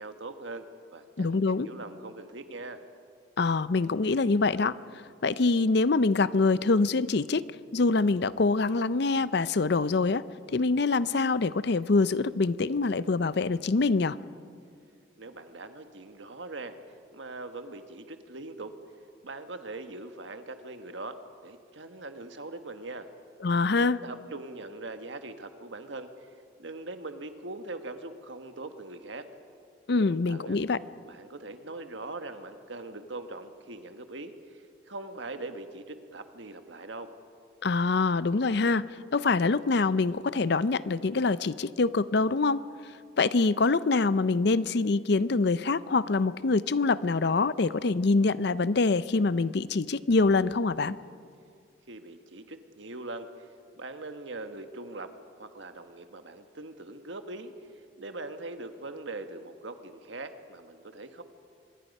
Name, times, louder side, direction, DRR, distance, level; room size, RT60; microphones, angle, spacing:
voice 1, 0.0-2.8 15.2-16.8 17.1-18.7 19.2-21.2 21.4-23.1 23.8-26.3 26.6-29.3 29.9-30.6 31.1-37.1 51.9-53.5 53.7-55.1 55.4-57.5 58.0-61.2, right 2 dB, 70° right, 8 dB, 1.4 m, -41 dB
voice 2, 1.2-1.7 3.4-4.8 5.2-7.4 7.7-10.2 10.5-14.2 23.4-24.0 29.9-30.8 37.6-42.6 43.2-51.0, left 3 dB, 55° left, 16 dB, 0.5 m, -25 dB
25.0 x 21.5 x 5.4 m, 2.2 s
head